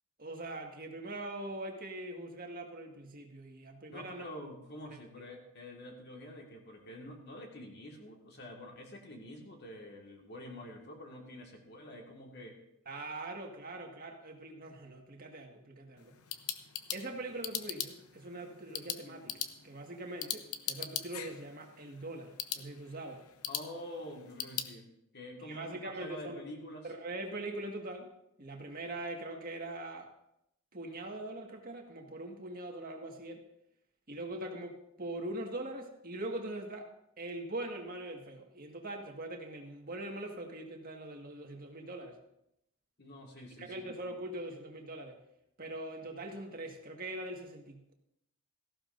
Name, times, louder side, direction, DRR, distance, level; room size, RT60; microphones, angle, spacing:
voice 1, 0.2-4.2 4.9-5.0 12.9-16.1 16.9-23.2 25.4-26.4 26.8-28.1 28.4-30.1 30.7-33.4 34.1-36.9 37.2-42.2 43.6-45.2 45.6-47.9, right 1 dB, 40° right, 2 dB, 1.8 m, -42 dB
voice 2, 3.9-12.6 23.5-26.9 43.0-43.8, left 1 dB, 50° left, 1 dB, 1.9 m, -47 dB
sound 1, 16.0-24.7, left 10 dB, 90° left, 0.9 m, -41 dB
17.5 x 15.0 x 2.6 m, 0.81 s
head